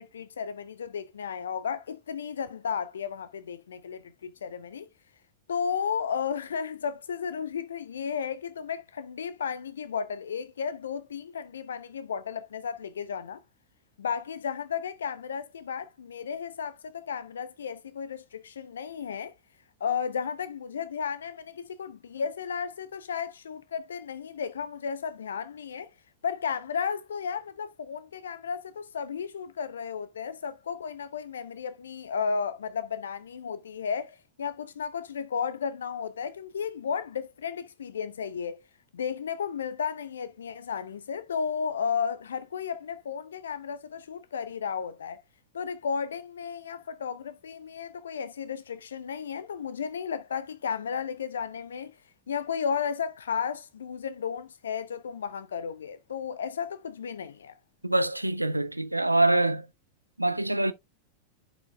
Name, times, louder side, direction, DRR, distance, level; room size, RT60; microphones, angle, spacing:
voice 1, 0.0-4.9 5.5-13.4 14.0-19.3 19.8-25.9 26.2-38.6 38.9-45.2 45.5-51.9 52.3-57.5, left 6 dB, 65° left, 0.4 m, -33 dB
voice 2, 57.8-59.7 60.2-60.7, right 2 dB, 85° right, 0.5 m, -25 dB
11.0 x 4.9 x 2.2 m
figure-of-eight pair, 90°, 0 cm